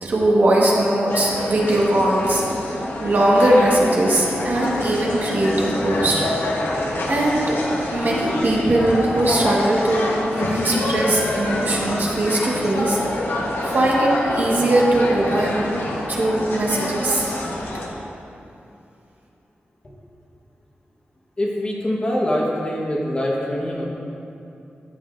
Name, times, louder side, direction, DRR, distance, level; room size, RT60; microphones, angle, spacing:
voice 1, 0.0-2.4 3.0-6.2 7.1-7.5 7.9-13.0 13.6-15.7 16.1-17.3, right 1 dB, 50° right, -4 dB, 1.5 m, -20 dB
sound 1, 1.1-17.9, left 1 dB, 85° left, 1.2 m, -26 dB
voice 2, 21.4-23.9, left 1 dB, 30° left, -3 dB, 1.3 m, -24 dB
13.5 x 7.9 x 2.6 m, 2.7 s
wide cardioid pair, 150°, 4 cm